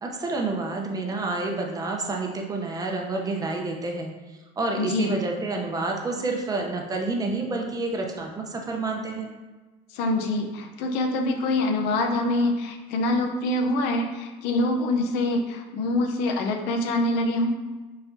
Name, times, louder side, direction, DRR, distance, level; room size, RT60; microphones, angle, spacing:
voice 1, 0.0-9.3, right 3 dB, 20° right, 1 dB, 0.6 m, -29 dB
voice 2, 4.8-5.1 9.9-17.5, left 2 dB, 85° left, 4 dB, 0.6 m, -25 dB
4.6 x 4.1 x 2.6 m, 1.2 s
cardioid pair, 135°, 17 cm